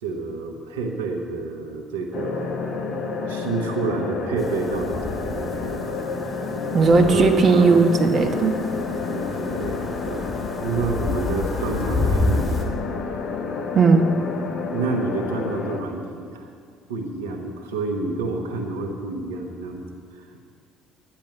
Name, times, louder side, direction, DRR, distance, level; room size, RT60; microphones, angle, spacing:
voice 1, 0.0-5.9 6.8-7.9 8.8-10.3 10.6-12.5 13.0-13.2 14.7-16.5 16.9-19.9 20.1-20.3, right 3 dB, 85° right, 3 dB, 1.1 m, -29 dB
sound 1, 2.1-15.8, left 5 dB, 45° left, 1.5 m, -30 dB
sound 2, 4.4-12.6, left 2 dB, 15° left, 2.7 m, -30 dB
voice 2, 6.7-8.5 13.7-14.1, right 4 dB, 45° right, 4 dB, 1.1 m, -16 dB
10.5 x 10.5 x 6.7 m, 2.1 s
hypercardioid pair, 55°, 0 cm